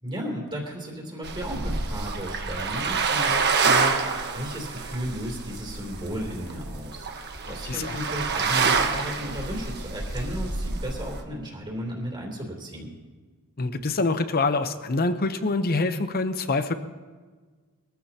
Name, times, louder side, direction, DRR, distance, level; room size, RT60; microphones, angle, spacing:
voice 1, 0.0-7.1 7.5-12.9, equal, 20° right, -2 dB, 3.1 m, -34 dB
sound 1, 1.2-11.2, right 4 dB, 50° right, 1.3 m, -27 dB
voice 2, 7.7-8.0 13.6-16.7, left 3 dB, 45° left, 10 dB, 0.8 m, -25 dB
22.0 x 15.0 x 2.9 m, 1.4 s
head